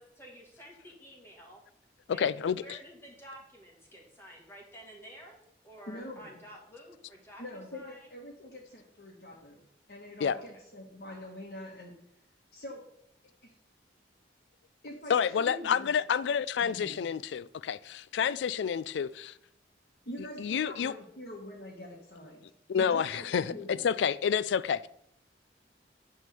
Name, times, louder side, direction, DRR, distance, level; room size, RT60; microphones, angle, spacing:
voice 1, 0.0-1.6 2.1-5.4 5.6-7.4 7.7-8.1 10.3-10.6, equal, 15° left, 1.8 m, -51 dB
voice 2, 2.1-2.6 10.2-10.4 15.1-19.3 20.4-20.9 22.7-24.9, left 7 dB, 80° left, 0.3 m, -29 dB
voice 3, 5.9-6.4 7.4-9.6 9.9-11.9 12.5-12.8 13.4-13.5 14.8-15.9 16.6-17.0 20.0-23.9, left 1 dB, 60° left, 1.4 m, -44 dB
9.2 x 3.6 x 6.8 m
head